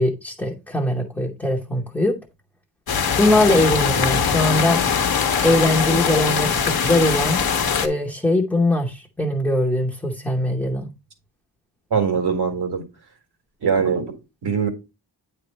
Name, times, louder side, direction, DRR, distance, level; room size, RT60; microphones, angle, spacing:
voice 1, 0.0-2.2 3.2-4.8 5.4-7.4 7.8-10.9, left 1 dB, 5° left, 0.9 m, -21 dB
sound 1, 2.9-7.9, left 7 dB, 55° left, 1.0 m, -21 dB
voice 2, 11.9-12.8 13.6-14.7, right 6 dB, 60° right, 1.8 m, -22 dB
9.1 x 3.3 x 4.2 m
wide cardioid pair, 140°, 43 cm